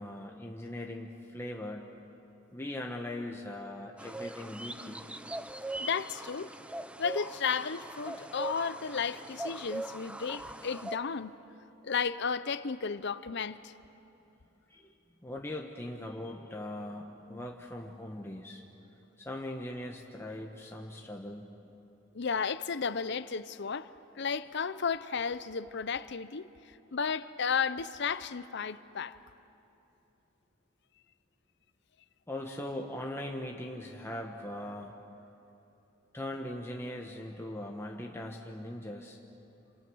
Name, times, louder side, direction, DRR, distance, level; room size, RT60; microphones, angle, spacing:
voice 1, 0.0-1.9 2.5-5.0 14.7-14.9 15.2-18.6 19.2-21.5 32.3-34.9 36.1-39.2, left 1 dB, 15° left, 1.2 m, -40 dB
sound 1, 4.0-11.0, right 2 dB, 5° right, 0.6 m, -41 dB
voice 2, 5.8-6.5 7.0-11.3 11.8-13.7 22.1-23.9 24.1-26.5 26.9-29.2, left 6 dB, 55° left, 0.7 m, -33 dB
28.0 x 27.0 x 6.3 m
head